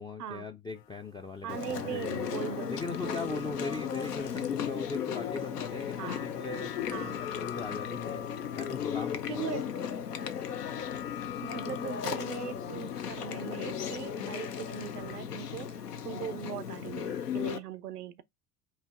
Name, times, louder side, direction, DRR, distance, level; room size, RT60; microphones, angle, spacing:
voice 1, 0.0-2.3 2.7-9.4, left 3 dB, 10° left, 0.3 m, -39 dB
sound 1, 0.7-15.2, left 11 dB, 55° left, 1.3 m, -47 dB
voice 2, 1.4-2.7 3.0-3.7 6.0-6.3 6.9-7.2 9.3-9.7 11.4-15.7 16.0-18.2, right 8 dB, 85° right, 0.7 m, -39 dB
Chewing mastication, 1.5-17.6, left 8 dB, 85° left, 0.7 m, -36 dB
4.6 x 2.8 x 3.7 m
figure-of-eight pair, 70°, 46 cm